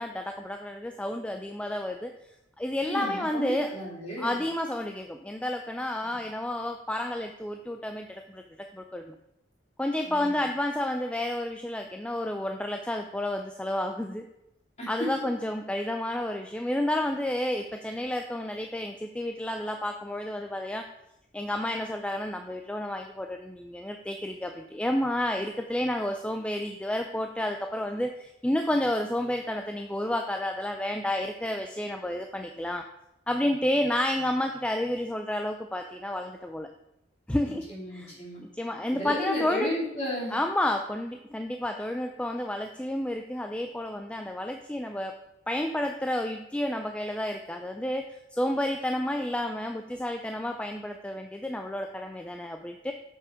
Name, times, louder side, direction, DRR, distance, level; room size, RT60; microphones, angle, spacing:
voice 1, 0.0-2.1 2.6-3.7 4.2-9.1 9.8-14.2 14.9-20.9 21.3-32.8 33.3-36.7 37.3-37.6 37.9-39.7 40.3-45.2 45.5-48.0 48.3-52.9, left 1 dB, 5° left, 4 dB, 0.3 m, -30 dB
voice 2, 2.8-4.4 10.0-10.4 14.8-14.9 37.4-38.4 38.9-40.3, equal, 35° left, -5 dB, 2.8 m, -33 dB
7.2 x 5.5 x 4.9 m, 0.87 s
head